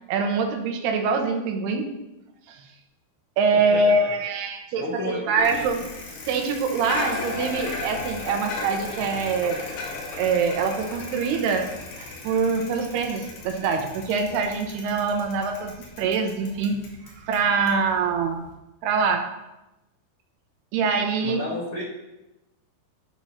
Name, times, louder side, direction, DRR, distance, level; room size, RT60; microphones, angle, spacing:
voice 1, 0.1-1.9 2.5-2.7 3.4-5.8 6.3-9.7 10.2-16.8 17.2-18.5 18.8-19.3 20.7-21.5, right 4 dB, 80° right, 4 dB, 2.9 m, -24 dB
voice 2, 3.5-4.1 4.8-5.6 21.2-21.8, left 2 dB, 70° left, -4 dB, 1.3 m, -32 dB
Bicycle, 5.4-18.5, left 3 dB, 85° left, 4.0 m, -36 dB
11.5 x 4.4 x 5.7 m, 0.95 s
omnidirectional pair, 4.8 m